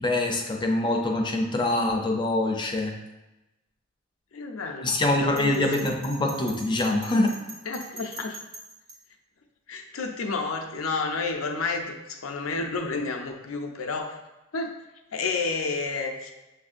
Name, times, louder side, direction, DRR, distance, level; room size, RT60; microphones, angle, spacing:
voice 1, 0.0-3.0 4.8-7.4, left 2 dB, 20° left, 2 dB, 0.4 m, -24 dB
voice 2, 4.3-4.9 5.2-5.6 7.7-8.4 9.7-14.2 14.5-14.7 15.1-16.3, left 4 dB, 80° left, 3 dB, 0.5 m, -30 dB
Bell, 5.4-9.0, right 3 dB, 75° right, 1.2 m, -42 dB
6.8 x 2.6 x 2.5 m, 1.0 s
head